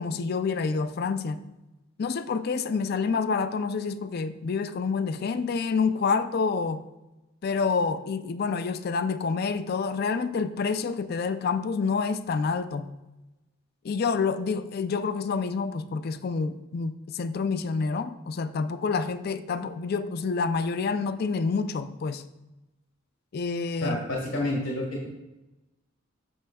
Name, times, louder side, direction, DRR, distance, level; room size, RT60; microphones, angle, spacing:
voice 1, 0.0-1.4 2.0-6.8 7.4-12.9 13.8-22.3 23.3-24.0, left 5 dB, 45° left, 11 dB, 0.4 m, -28 dB
voice 2, 23.8-25.1, left 1 dB, 85° left, -3 dB, 1.5 m, -29 dB
8.9 x 6.3 x 2.3 m, 1.0 s
head